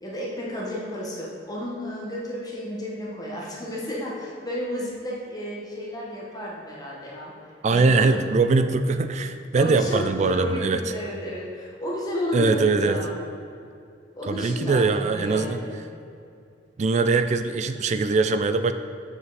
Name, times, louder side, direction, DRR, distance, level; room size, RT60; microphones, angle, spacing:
voice 1, 0.0-7.3 7.7-8.2 9.5-13.2 14.2-15.8, left 1 dB, 20° left, -4 dB, 1.2 m, -32 dB
voice 2, 7.6-10.8 12.3-13.0 14.3-15.6 16.8-18.7, right 4 dB, 35° right, 10 dB, 0.3 m, -22 dB
7.9 x 5.4 x 4.0 m, 2.5 s
head